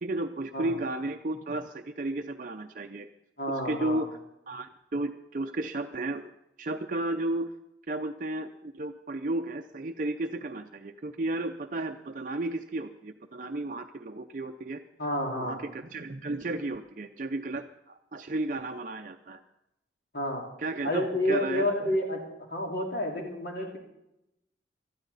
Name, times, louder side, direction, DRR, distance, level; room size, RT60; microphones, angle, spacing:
voice 1, 0.0-3.1 3.6-4.1 4.5-6.3 6.6-7.5 7.9-14.8 15.3-19.4 20.6-22.0, right 2 dB, 45° right, 5 dB, 0.5 m, -33 dB
voice 2, 3.4-4.0 15.0-15.6 20.1-20.4 20.8-22.2 22.5-23.8, left 1 dB, 60° left, 0 dB, 2.6 m, -29 dB
20.0 x 13.0 x 4.0 m, 0.87 s
head